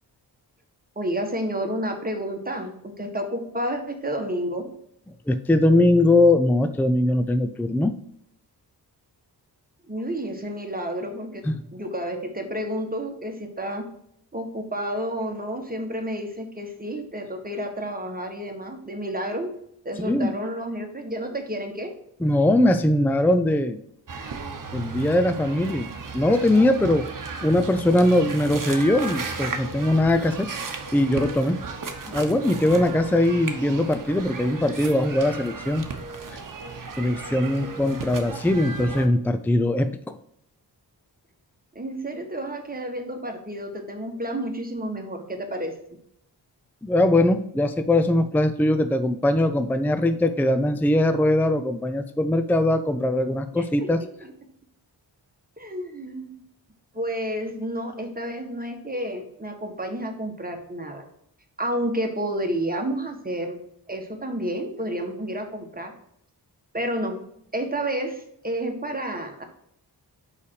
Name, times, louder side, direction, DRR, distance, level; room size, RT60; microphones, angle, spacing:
voice 1, 0.9-4.7 9.9-11.4 11.7-13.9 14.3-19.5 19.8-21.9 41.7-45.7 53.5-53.9 54.2-54.3 55.6-56.4 56.9-61.0 61.6-63.6 63.9-66.0 66.7-67.2 67.5-69.4, right 1 dB, 20° right, 3 dB, 1.6 m, -30 dB
voice 2, 5.3-8.0 11.4-11.6 20.0-20.3 22.2-23.8 24.7-25.9 26.1-27.1 27.4-30.5 30.9-31.6 32.1-35.9 37.0-40.2 46.8-54.0, left 1 dB, 5° left, 10 dB, 0.5 m, -21 dB
sound 1, 24.1-39.1, right 4 dB, 45° right, 1.1 m, -35 dB
5.6 x 5.0 x 4.7 m, 0.73 s
cardioid pair, 55°, 43 cm